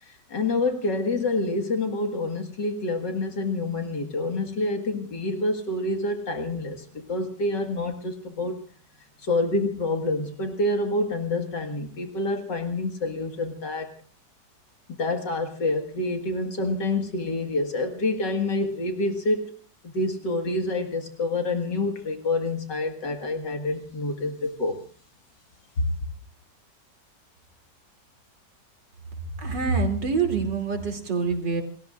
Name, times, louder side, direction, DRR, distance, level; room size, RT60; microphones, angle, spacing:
voice 1, 0.0-8.6 9.2-13.9 14.9-19.5 19.8-24.8 25.8-25.9, left 2 dB, 75° left, 5 dB, 2.5 m, -27 dB
voice 2, 29.4-31.6, right 4 dB, 80° right, 4 dB, 3.7 m, -25 dB
29.0 x 20.0 x 2.5 m, 0.41 s
omnidirectional pair, 1.9 m